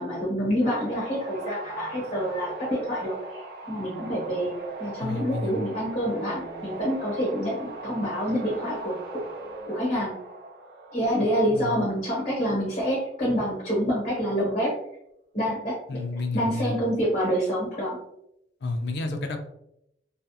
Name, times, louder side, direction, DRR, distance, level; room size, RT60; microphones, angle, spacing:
voice 1, 0.0-4.5 4.8-9.2 9.7-10.1 10.9-14.7 15.3-15.8 16.3-18.0, equal, 45° left, -5 dB, 0.8 m, -27 dB
sound 1, 0.6-13.0 16.8-17.0, right 2 dB, 60° right, 0.5 m, -40 dB
voice 2, 5.0-5.6 11.5-11.8 15.9-16.8 18.6-19.4, left 2 dB, 75° left, 5 dB, 0.4 m, -30 dB
2.7 x 2.2 x 2.3 m, 0.79 s
head